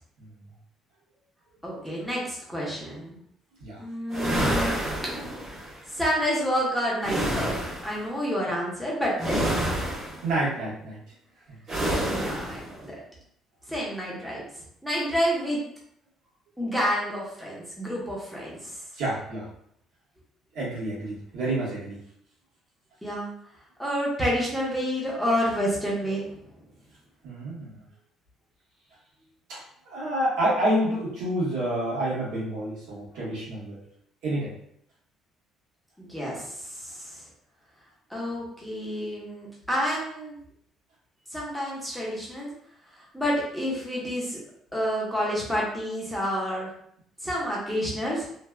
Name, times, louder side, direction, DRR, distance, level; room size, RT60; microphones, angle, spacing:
voice 1, 1.6-3.2 3.8-4.9 6.0-9.9 12.1-13.0 13.7-14.4 14.8-15.6 16.6-18.7 23.0-23.3 23.8-26.3 36.0-37.2 38.1-40.4 41.3-42.5 43.1-44.4 44.7-46.7 47.2-48.3, equal, ahead, -6 dB, 0.8 m, -29 dB
sound 1, 4.1-5.7 7.0-8.0 9.2-10.3 11.7-12.6, right 1 dB, 45° right, 1.3 m, -28 dB
voice 2, 10.2-11.1 11.5-11.6 18.9-19.5 20.5-22.0 27.2-27.8 29.5-33.8 34.2-34.5, right 1 dB, 90° right, -7 dB, 1.4 m, -29 dB
3.2 x 2.3 x 2.3 m, 0.69 s
cardioid pair, 145°, 0 cm